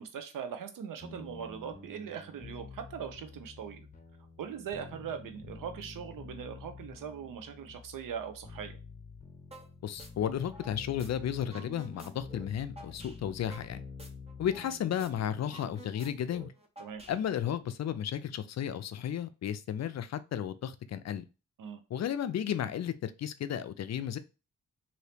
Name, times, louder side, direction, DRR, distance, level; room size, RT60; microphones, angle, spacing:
voice 1, 0.0-3.9 4.4-8.8 16.8-17.0 21.6-21.8, right 7 dB, 85° right, 0.6 m, -41 dB
sound 1, 1.0-15.8, left 4 dB, 25° left, 0.9 m, -49 dB
sound 2, 9.5-9.7 10.0-11.1 11.4-14.7 15.0-15.1 15.4-17.5, right 1 dB, 20° right, 0.7 m, -50 dB
voice 2, 9.8-13.8 14.4-16.5 17.1-21.2 21.9-24.2, left 9 dB, 55° left, 0.4 m, -33 dB
2.8 x 2.7 x 3.3 m
cardioid pair, 75°, 32 cm